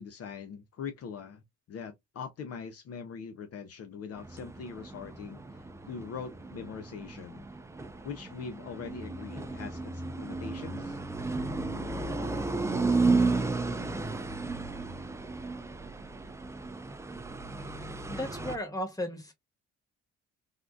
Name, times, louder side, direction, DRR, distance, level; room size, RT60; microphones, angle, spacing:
voice 1, 0.0-1.4 1.7-7.4 8.0-11.0, left 6 dB, 55° left, 0.5 m, -42 dB
sound 1, 4.2-18.6, right 3 dB, 10° right, 0.4 m, -33 dB
voice 2, 17.8-19.3, left 1 dB, 10° left, 1.3 m, -36 dB
3.5 x 2.4 x 2.3 m
cardioid pair, 90°, 30 cm